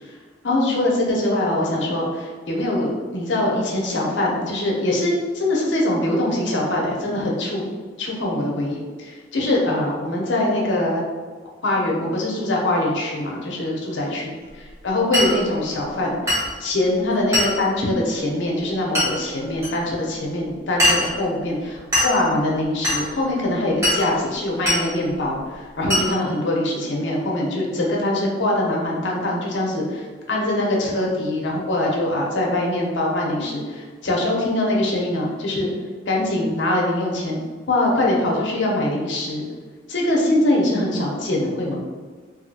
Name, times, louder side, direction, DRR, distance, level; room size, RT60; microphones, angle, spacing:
voice 1, 0.4-7.7 8.0-11.0 11.6-14.3 14.8-35.7 36.1-37.4 37.7-39.4 39.9-41.8, left 1 dB, 70° left, -2 dB, 0.7 m, -23 dB
Glass, 15.1-15.4 16.3-16.5 17.3-17.6 18.9-19.1 19.6-19.7 20.8-21.1 21.9-22.2 22.8-23.0 23.8-24.1 24.7-24.8 25.9-26.1, left 1 dB, 15° right, 1.2 m, -20 dB
2.9 x 2.7 x 2.8 m, 1.5 s
head